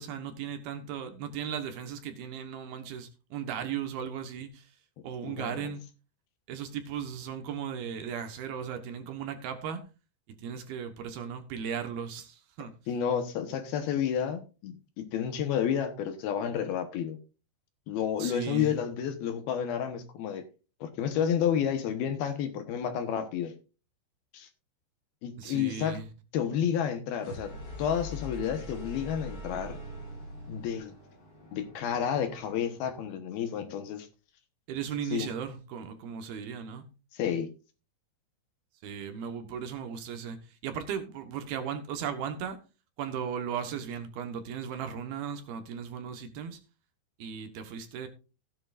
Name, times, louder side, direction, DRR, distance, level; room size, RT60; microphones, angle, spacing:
voice 1, 0.0-4.7 5.0-5.8 6.5-9.8 10.4-12.7 18.2-18.7 25.4-26.1 34.7-36.8 38.8-42.6 43.0-46.6 47.2-48.1, right 7 dB, 70° right, 7 dB, 2.9 m, -36 dB
voice 2, 5.2-5.7 12.9-17.2 17.9-20.4 20.8-23.5 24.3-24.5 25.2-26.0 26.3-27.5 27.8-29.8 30.5-30.9 31.5-34.1 35.1-35.3 37.1-37.5, left 8 dB, 70° left, 8 dB, 2.9 m, -30 dB
sound 1, 27.1-33.0, left 1 dB, 45° left, 5.8 m, -43 dB
15.5 x 10.5 x 2.5 m, 0.32 s
omnidirectional pair, 5.0 m